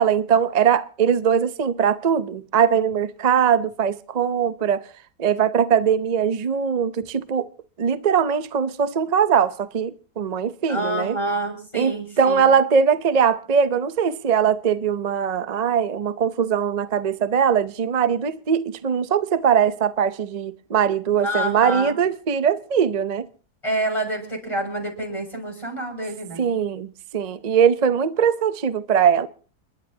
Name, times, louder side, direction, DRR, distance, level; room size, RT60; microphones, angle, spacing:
voice 1, 0.0-4.8 5.2-7.5 7.8-11.2 11.7-23.3 26.4-29.3, right 7 dB, 55° right, 0.4 m, -21 dB
voice 2, 10.7-12.5 21.2-21.9 23.6-26.4, right 1 dB, 20° left, 6.6 m, -27 dB
29.5 x 11.5 x 2.8 m
omnidirectional pair, 1.7 m